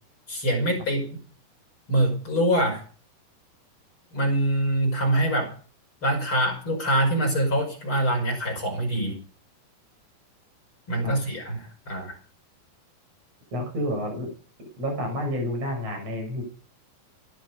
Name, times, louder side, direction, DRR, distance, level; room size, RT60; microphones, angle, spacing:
voice 1, 0.3-1.1 1.9-2.8 4.1-5.5 6.0-9.2 10.9-12.2, right 1 dB, 30° left, 2 dB, 5.9 m, -24 dB
voice 2, 13.5-14.3 14.8-16.4, left 1 dB, 35° right, 3 dB, 7.6 m, -29 dB
17.5 x 13.0 x 5.3 m, 0.40 s
omnidirectional pair, 5.1 m